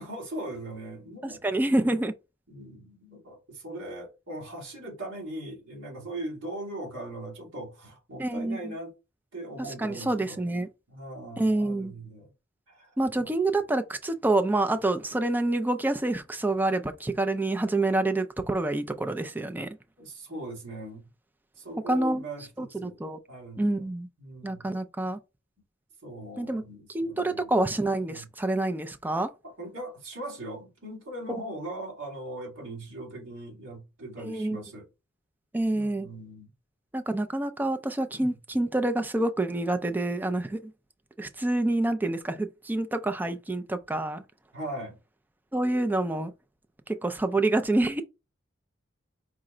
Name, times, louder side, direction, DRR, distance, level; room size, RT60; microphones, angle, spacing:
voice 1, 0.0-2.0 2.5-8.9 9.3-10.4 10.9-12.3 12.7-13.3 20.0-21.1 21.6-23.0 23.3-23.9 24.2-24.7 26.0-27.5 28.0-28.3 29.4-34.9 35.7-36.5 38.1-38.4 44.5-45.0, right 1 dB, 70° right, 2.2 m, -40 dB
voice 2, 1.4-2.1 8.2-8.7 9.8-10.7 11.4-11.9 13.0-19.7 21.9-22.2 22.6-23.2 23.6-24.1 24.4-25.2 26.4-26.6 26.9-29.3 31.3-31.4 34.2-34.6 35.5-36.1 36.9-40.7 41.2-44.2 45.5-46.3 46.9-48.0, right 2 dB, 10° right, 0.3 m, -27 dB
4.8 x 2.1 x 3.7 m
head